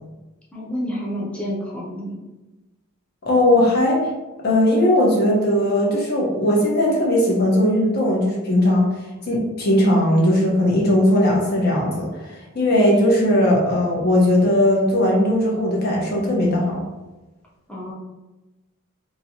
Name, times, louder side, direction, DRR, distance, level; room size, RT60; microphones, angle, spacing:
voice 1, 0.5-2.2 17.7-17.9, equal, 5° left, -5 dB, 0.7 m, -29 dB
voice 2, 3.2-4.0 4.4-8.9 9.3-16.8, left 1 dB, 45° left, -3 dB, 0.9 m, -18 dB
2.9 x 2.8 x 2.7 m, 1.1 s
head